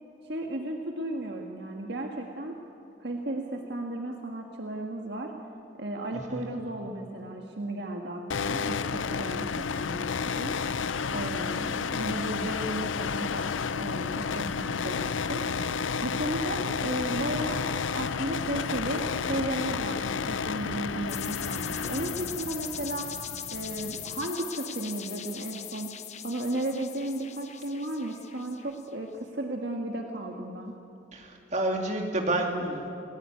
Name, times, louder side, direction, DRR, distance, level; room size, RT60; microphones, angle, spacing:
voice 1, 0.2-2.6 3.0-5.3 5.8-10.6 11.1-15.5 16.0-17.6 17.9-23.1 23.5-25.9 26.2-30.7, right 1 dB, 60° right, 2 dB, 1.7 m, -34 dB
sound 1, 8.3-24.3, left 6 dB, 85° left, 0.6 m, -31 dB
sound 2, 21.1-28.9, left 10 dB, 35° left, 1.0 m, -40 dB
voice 2, 31.1-32.9, right 1 dB, 35° right, 2 dB, 2.9 m, -29 dB
28.5 x 19.0 x 9.6 m, 2.8 s
head